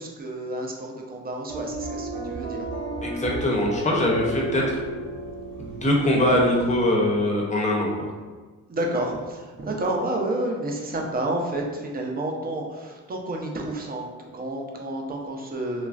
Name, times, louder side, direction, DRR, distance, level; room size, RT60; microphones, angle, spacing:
voice 1, 0.0-2.7 4.5-4.7 8.7-15.9, right 1 dB, 30° right, 0 dB, 0.5 m, -30 dB
sound 1, 1.5-6.8, right 2 dB, 80° right, 1.2 m, -33 dB
voice 2, 3.0-4.8 5.6-8.1, left 1 dB, 25° left, -2 dB, 0.7 m, -22 dB
3.1 x 2.4 x 2.4 m, 1.3 s
cardioid pair, 90°, 30 cm